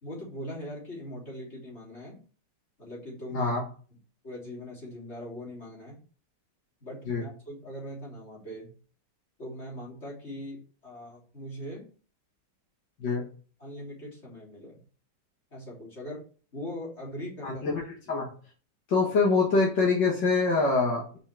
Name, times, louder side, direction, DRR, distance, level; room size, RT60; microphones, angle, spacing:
voice 1, 0.0-2.2 2.8-3.5 4.2-6.0 6.8-8.7 9.4-11.9 13.6-14.8 15.5-16.3 16.5-17.7, equal, 40° left, -4 dB, 3.4 m, -41 dB
voice 2, 3.3-3.6 7.1-7.2 13.0-13.2 17.4-17.8 18.1-18.3 18.9-21.2, left 4 dB, 85° left, -4 dB, 2.5 m, -24 dB
5.4 x 5.3 x 5.9 m, 0.40 s
omnidirectional pair, 1.9 m